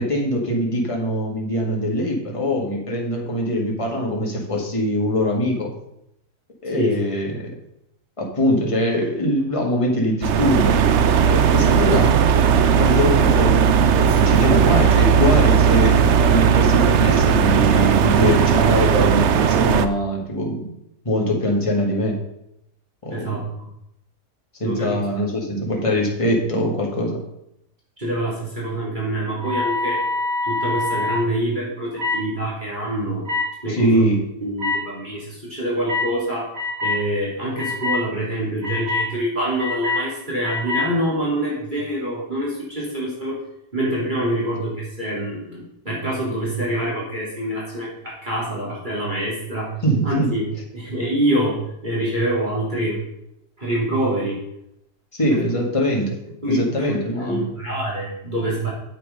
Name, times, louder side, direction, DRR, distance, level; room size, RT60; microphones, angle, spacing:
voice 1, 0.0-5.7 6.6-7.4 8.2-10.8 11.3-12.1 12.5-20.7 21.0-22.2 23.0-23.4 24.6-27.2 33.7-34.2 49.8-50.3 55.1-56.2 56.5-57.4, equal, 20° left, -1 dB, 2.0 m, -22 dB
sound 1, 10.2-19.9, right 7 dB, 60° right, 0.7 m, -16 dB
voice 2, 23.1-23.7 24.6-25.0 25.3-25.4 25.9-26.0 28.0-30.1 30.4-33.2 33.6-34.1 34.4-36.5 36.8-43.4 43.7-49.8 50.0-50.5 50.7-53.0 53.6-54.4 55.3-55.4 56.4-58.7, right 1 dB, 30° right, -6 dB, 3.4 m, -25 dB
sound 2, 29.4-31.2 32.0-32.2 33.3-33.5 34.6-34.8 35.9-36.1 36.5-37.0 37.6-38.0 38.6-39.1 39.6-40.0 40.4-40.9, left 3 dB, 90° right, 4.2 m, -24 dB
9.2 x 7.7 x 5.3 m, 0.80 s
omnidirectional pair, 1.7 m